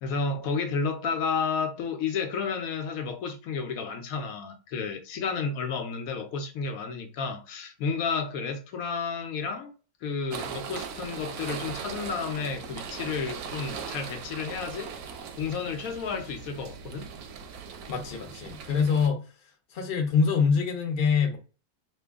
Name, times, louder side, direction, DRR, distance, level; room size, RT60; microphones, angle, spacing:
voice 1, 0.0-9.7 10.0-17.1, left 5 dB, 75° left, 1.1 m, -31 dB
sound 1, 10.3-19.1, right 7 dB, 85° right, 1.1 m, -39 dB
voice 2, 17.9-19.2 19.7-21.4, left 5 dB, 50° left, 0.9 m, -25 dB
3.0 x 2.2 x 3.5 m
omnidirectional pair, 1.5 m